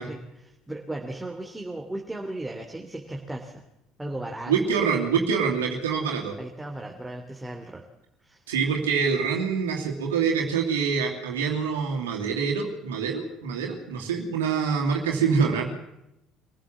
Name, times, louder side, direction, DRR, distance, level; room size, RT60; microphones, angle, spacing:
voice 1, 0.0-3.6 4.0-4.8 6.4-7.8 8.2-8.4, right 1 dB, 10° right, 1 dB, 3.1 m, -36 dB
voice 2, 4.5-6.4 8.5-15.7, right 6 dB, 85° right, 0 dB, 2.7 m, -25 dB
25.5 x 15.0 x 7.5 m, 0.86 s
hypercardioid pair, 60°, 0 cm